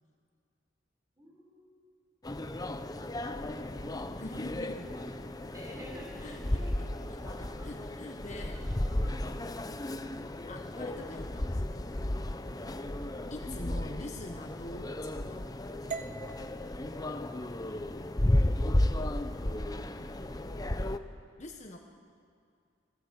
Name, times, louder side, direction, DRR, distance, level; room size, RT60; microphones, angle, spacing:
voice 1, 1.2-1.9 3.2-4.2 5.3-7.8 8.3-9.6 19.5-20.1, equal, 15° right, -2 dB, 6.8 m, -52 dB
sound 1, 2.2-21.0, left 1 dB, 20° left, 0.8 m, -34 dB
voice 2, 4.2-4.9 6.2-6.7 7.1-8.6 10.5-12.1 13.3-15.4 19.9-20.1 21.4-21.8, left 1 dB, 40° left, 3 dB, 1.4 m, -45 dB
sound 2, 15.9-20.0, right 5 dB, 40° right, 1.1 m, -46 dB
25.5 x 18.5 x 8.3 m, 2.3 s
head